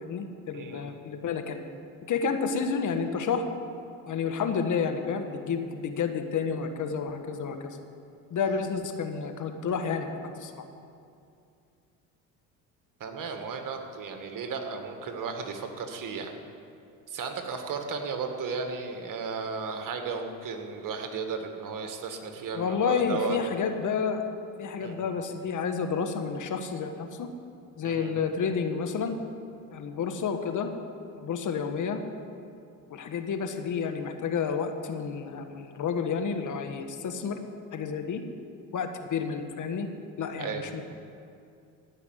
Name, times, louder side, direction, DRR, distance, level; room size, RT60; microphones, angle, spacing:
voice 1, 0.0-1.6 2.1-3.4 4.1-7.8 8.3-10.5 22.5-24.2 24.6-27.3 27.8-29.2 29.7-30.7 31.1-32.0 32.9-37.4 37.7-38.2 38.7-39.9 40.2-40.8, left 6 dB, 45° left, 6 dB, 1.4 m, -30 dB
voice 2, 0.5-0.9 13.0-16.3 17.1-23.4 24.8-25.1 27.8-28.2 40.4-40.7, right 5 dB, 50° right, 5 dB, 1.9 m, -35 dB
16.0 x 5.8 x 9.4 m, 2.5 s
hypercardioid pair, 70°, 41 cm